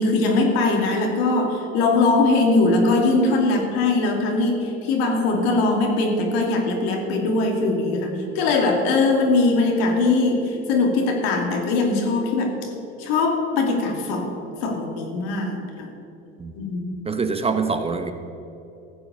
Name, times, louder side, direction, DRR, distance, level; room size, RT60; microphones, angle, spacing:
voice 1, 0.0-12.7 13.0-14.3 14.6-15.9 16.6-16.8, left 3 dB, 75° left, 2 dB, 2.5 m, -21 dB
voice 2, 17.0-18.1, right 4 dB, 20° right, 8 dB, 0.9 m, -24 dB
14.5 x 7.8 x 6.8 m, 2.9 s
supercardioid pair, 95°, 31 cm